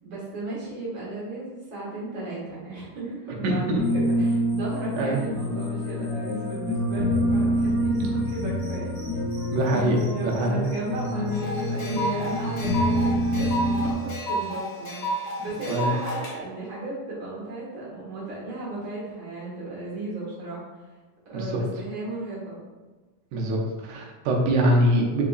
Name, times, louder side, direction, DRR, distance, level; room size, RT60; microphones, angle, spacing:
voice 1, 0.0-8.9 9.9-20.6 21.3-22.6, right 2 dB, 45° right, -7 dB, 1.9 m, -35 dB
voice 2, 3.4-3.9 5.0-5.2 9.5-10.7 15.7-15.9 21.3-21.4 23.3-23.6 23.8-25.2, right 1 dB, 75° right, -1 dB, 2.0 m, -23 dB
sound 1, 3.8-13.9, equal, 90° left, 0.6 m, -26 dB
sound 2, 11.3-16.3, right 1 dB, 55° left, 1.9 m, -31 dB
4.6 x 4.1 x 2.4 m, 1.3 s
omnidirectional pair, 3.7 m